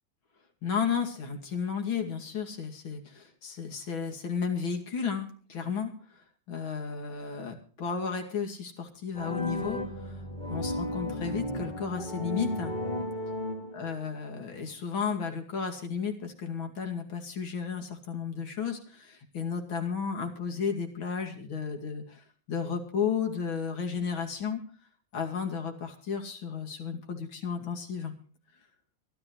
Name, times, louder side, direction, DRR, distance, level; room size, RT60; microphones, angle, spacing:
voice 1, 0.6-5.9 6.5-9.8 10.1-10.2 10.5-12.7 13.7-24.6 25.1-28.1, left 6 dB, 85° left, 4 dB, 3.2 m, -33 dB
sound 1, 9.1-14.1, left 1 dB, 20° left, 2.9 m, -34 dB
23.5 x 13.5 x 3.1 m, 0.43 s
omnidirectional pair, 2.1 m